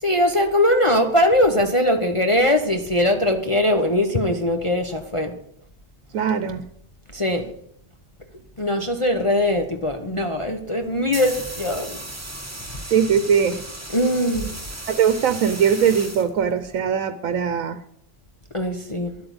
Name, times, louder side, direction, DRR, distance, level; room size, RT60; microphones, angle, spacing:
voice 1, 0.0-5.4 7.1-7.5 8.6-12.0 13.9-14.5 18.5-19.2, left 1 dB, 25° left, 4 dB, 0.9 m, -21 dB
voice 2, 6.1-6.7 12.9-13.6 14.9-17.8, right 7 dB, 85° right, 11 dB, 1.2 m, -20 dB
sound 1, 10.8-16.8, right 1 dB, 10° right, 1.5 m, -36 dB
11.5 x 8.8 x 7.9 m, 0.71 s
omnidirectional pair, 1.4 m